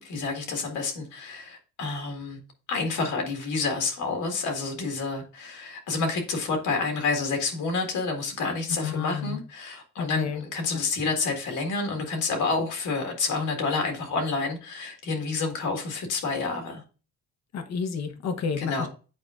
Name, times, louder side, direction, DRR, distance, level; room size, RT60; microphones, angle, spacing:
voice 1, 0.0-2.4 2.7-16.8 18.6-18.9, left 4 dB, 80° left, 1.9 m, -29 dB
voice 2, 8.8-9.4 10.0-10.4 10.7-10.8 17.5-18.9, left 6 dB, 60° left, 1.0 m, -30 dB
8.6 x 4.5 x 2.5 m
cardioid pair, 90°, 30 cm